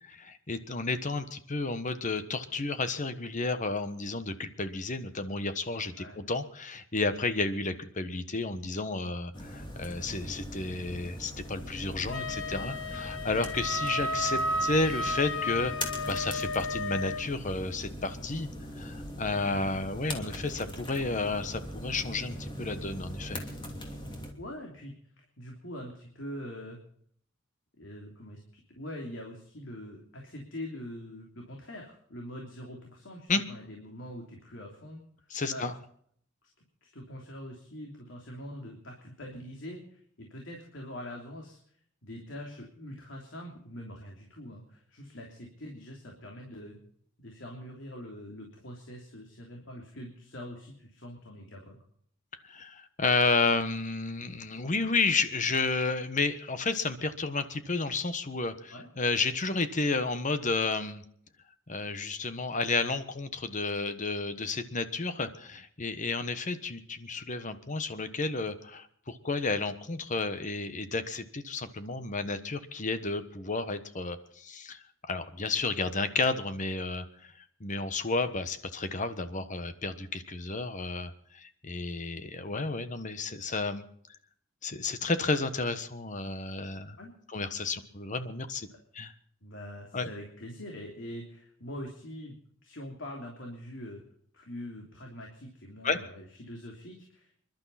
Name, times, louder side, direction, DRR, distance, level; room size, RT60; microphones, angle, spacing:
voice 1, 0.0-15.7 16.0-18.5 18.8-23.4 33.3-33.4 35.3-35.7 52.4-61.0 61.7-74.8 75.1-77.3 77.6-83.8 84.6-87.0 87.3-88.7 88.9-89.1 89.9-90.1 95.8-96.0, left 3 dB, 40° left, 11 dB, 1.2 m, -31 dB
sound 1, 9.3-24.3, equal, 25° left, 2.9 m, -41 dB
Wind instrument woodwind instrument, 12.1-17.3, left 1 dB, 90° left, 1.4 m, -33 dB
voice 2, 24.4-24.9 25.4-26.8 27.8-35.0 35.5-35.7 36.4-36.5 36.8-41.6 42.0-46.8 47.2-51.8 58.7-58.9 87.0-87.1 88.7-88.8 89.4-92.4 92.6-94.0 94.3-97.3, left 1 dB, 70° left, 0 dB, 3.2 m, -43 dB
27.5 x 12.0 x 4.2 m, 0.62 s
head